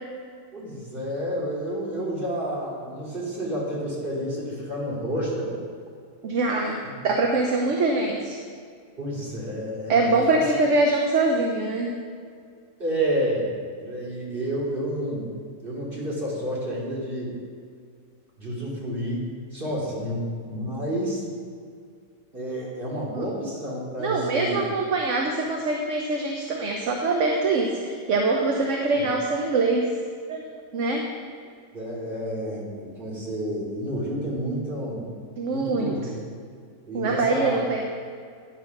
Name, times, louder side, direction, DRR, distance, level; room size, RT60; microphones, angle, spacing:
voice 1, 0.5-5.6 9.0-10.4 12.8-13.5 13.8-15.3 15.6-17.4 18.4-21.2 22.3-24.6 29.0-29.1 31.7-35.1 35.5-36.0 36.9-37.6, right 1 dB, 35° right, -5 dB, 2.9 m, -30 dB
voice 2, 6.2-6.8 7.0-8.4 9.9-11.9 23.1-23.3 24.0-29.9 30.3-30.4 30.7-31.1 35.4-35.9 36.9-37.9, right 3 dB, 60° right, 1 dB, 1.1 m, -23 dB
10.0 x 6.3 x 5.9 m, 2.2 s
omnidirectional pair, 1.6 m